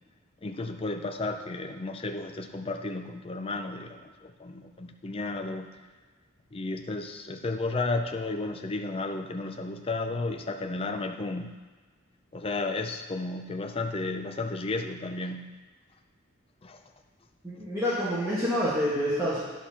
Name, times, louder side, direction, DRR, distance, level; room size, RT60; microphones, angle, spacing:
voice 1, 0.4-5.7 6.5-11.5 12.3-15.5 16.6-16.8, left 3 dB, 25° left, 5 dB, 0.5 m, -33 dB
voice 2, 17.4-19.4, equal, 10° right, -11 dB, 1.6 m, -27 dB
10.5 x 4.1 x 5.7 m, 1.4 s
head